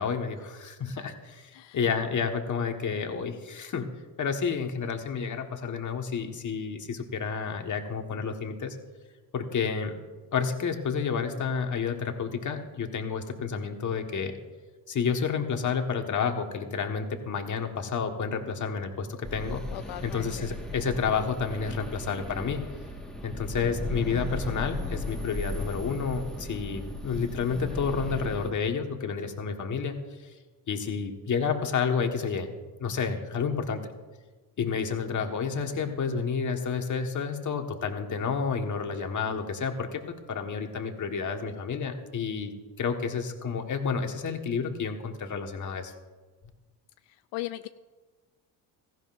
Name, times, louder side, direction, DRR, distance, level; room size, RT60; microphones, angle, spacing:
voice 1, 0.0-3.9 4.2-8.8 9.3-9.9 10.3-14.4 14.9-19.6 20.0-22.6 23.2-30.0 30.2-30.3 30.7-32.5 32.8-33.8 34.6-40.0 40.3-45.9, left 6 dB, 45° left, 4 dB, 1.6 m, -30 dB
sound 1, 19.2-28.5, left 1 dB, ahead, 1.7 m, -36 dB
voice 2, 19.7-20.5 47.3-47.7, left 16 dB, 85° left, 11 dB, 0.5 m, -37 dB
17.0 x 15.0 x 2.6 m, 1.3 s
cardioid pair, 95°, 43 cm